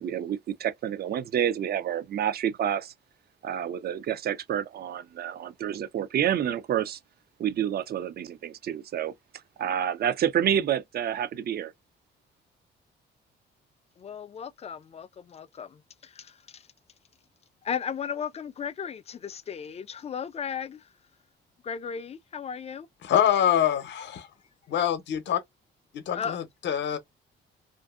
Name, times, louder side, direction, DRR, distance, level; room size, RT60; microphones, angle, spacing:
voice 1, 0.0-2.9 3.4-7.0 7.4-9.1 9.6-11.7, right 9 dB, 55° right, 0.5 m, -28 dB
voice 2, 14.0-16.7 17.6-20.9 21.6-22.9 26.1-26.4, left 7 dB, 30° left, 0.4 m, -36 dB
voice 3, 23.0-24.3 24.7-25.4 25.9-27.0, left 10 dB, 65° left, 0.7 m, -25 dB
2.6 x 2.5 x 2.3 m
cardioid pair, 90°, 20 cm